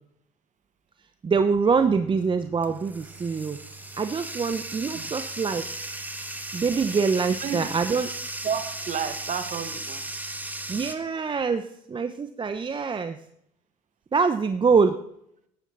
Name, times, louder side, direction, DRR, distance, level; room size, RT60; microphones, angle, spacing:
voice 1, 1.2-3.6 4.0-5.8 6.5-8.1 10.7-13.2 14.1-15.0, right 5 dB, 30° right, 9 dB, 0.9 m, -24 dB
Bathtub (filling or washing), 1.8-11.0, right 2 dB, 10° right, 1.7 m, -36 dB
voice 2, 7.3-7.7 8.4-10.0, right 7 dB, 45° right, 9 dB, 1.8 m, -31 dB
14.0 x 10.5 x 4.1 m, 0.72 s
supercardioid pair, 70°, 17 cm